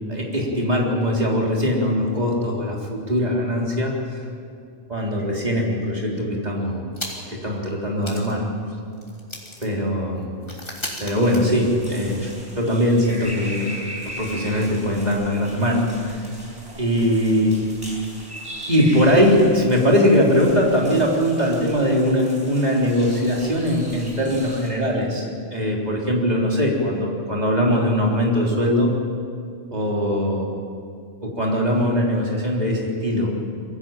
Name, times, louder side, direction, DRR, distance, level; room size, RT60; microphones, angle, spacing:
voice 1, 0.1-4.2 4.9-6.8 7.3-8.4 9.6-10.3 11.0-12.3 12.6-13.7 14.0-16.2 16.8-17.5 18.7-28.9 29.7-30.5 31.2-33.3, equal, 40° right, -2 dB, 3.9 m, -21 dB
sound 1, 6.9-7.5 7.7-7.8 8.0-12.1, left 1 dB, 25° left, 3.3 m, -37 dB
sound 2, 11.1-24.7, equal, 20° right, 6.6 m, -39 dB
23.0 x 16.0 x 9.0 m, 2.4 s
omnidirectional pair, 1.1 m